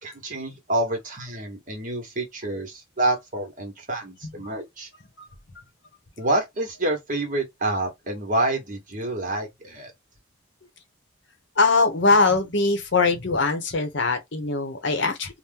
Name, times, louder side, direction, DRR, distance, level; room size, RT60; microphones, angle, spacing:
voice 1, 0.0-4.9 6.2-9.9, right 2 dB, 40° right, 1.1 m, -28 dB
voice 2, 11.6-15.4, left 3 dB, 55° left, 0.8 m, -22 dB
2.8 x 2.1 x 3.5 m
head